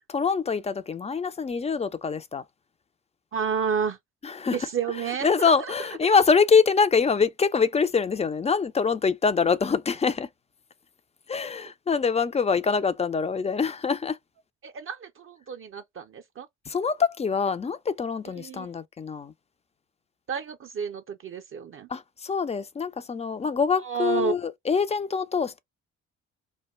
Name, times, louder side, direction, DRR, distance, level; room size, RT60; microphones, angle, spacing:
voice 1, 0.1-2.4 4.2-4.6 5.2-10.3 11.3-14.2 16.7-19.3 21.9-25.6, left 5 dB, 20° left, 0.4 m, -24 dB
voice 2, 3.3-4.0 4.5-5.9 14.6-16.5 18.4-18.7 20.3-21.9 23.8-24.4, right 6 dB, 35° right, 0.5 m, -31 dB
2.2 x 2.2 x 3.0 m
hypercardioid pair, 50°, 37 cm